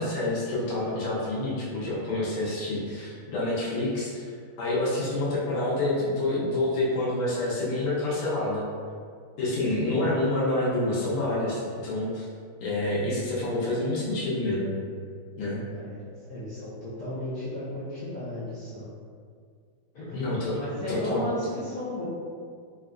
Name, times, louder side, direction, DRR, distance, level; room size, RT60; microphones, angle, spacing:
voice 1, 0.0-4.2 4.6-8.6 9.4-12.3 12.6-14.8 15.4-15.6 20.1-20.6 20.9-21.3, left 2 dB, 85° left, -6 dB, 1.8 m, -27 dB
voice 2, 15.7-16.0 16.3-18.9 19.9-20.2 20.6-22.1, left 1 dB, 70° left, -11 dB, 0.9 m, -35 dB
4.1 x 2.4 x 2.2 m, 2.1 s
omnidirectional pair, 2.4 m